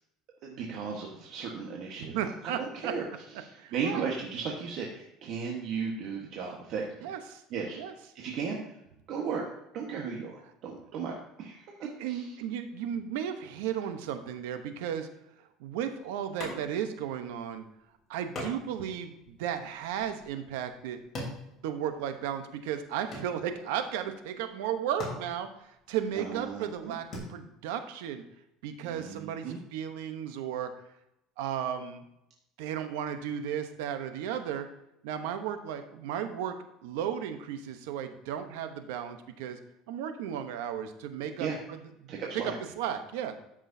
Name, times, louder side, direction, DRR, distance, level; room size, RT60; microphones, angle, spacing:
voice 1, 0.4-3.1 3.5-7.1 7.5-7.8 8.1-8.6 9.1-9.4 9.7-12.3 26.2-26.9 28.8-29.6 41.4-41.6 42.1-42.5, right 5 dB, 55° right, -1 dB, 1.3 m, -36 dB
voice 2, 2.0-2.9 3.6-4.0 7.0-7.4 7.7-7.9 11.8-15.1 15.6-17.7 18.1-21.0 21.6-25.5 25.9-28.2 28.6-30.7 31.4-32.0 32.6-34.7 35.0-36.5 36.8-39.6 39.9-42.4 42.8-43.4, right 9 dB, 90° right, 8 dB, 0.9 m, -34 dB
sound 1, 16.4-17.0 17.3-17.4 18.3-22.3 22.6-23.8 24.5-24.6 24.9-27.2, left 1 dB, 30° left, 3.5 m, -42 dB
12.5 x 6.1 x 2.7 m, 0.82 s
cardioid pair, 135°, 0 cm